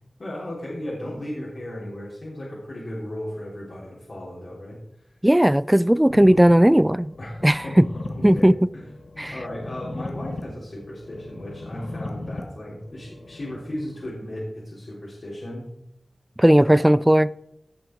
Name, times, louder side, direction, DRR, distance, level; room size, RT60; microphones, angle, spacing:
voice 1, 0.2-4.8 7.2-7.7 8.3-8.5 8.7-15.6 16.5-16.7, left 1 dB, 60° left, 3.7 m, -35 dB
voice 2, 5.2-7.1 7.4-7.9 8.2-8.5 9.2-9.4 16.4-17.3, right 1 dB, 10° right, 0.3 m, -16 dB
sound 1, 6.1-14.1, left 2 dB, 85° left, 1.5 m, -38 dB
17.0 x 6.3 x 4.6 m
wide cardioid pair, 55°, 0 cm